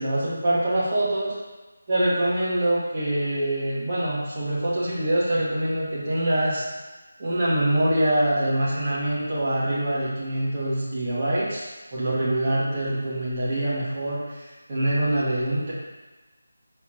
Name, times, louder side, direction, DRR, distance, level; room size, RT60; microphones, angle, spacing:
voice 1, 0.0-1.3 1.9-6.6 7.2-11.6 11.9-15.7, right 1 dB, 30° right, -9 dB, 2.1 m, -24 dB
12.0 x 4.3 x 3.0 m, 1.2 s
figure-of-eight pair, 160°, 0 cm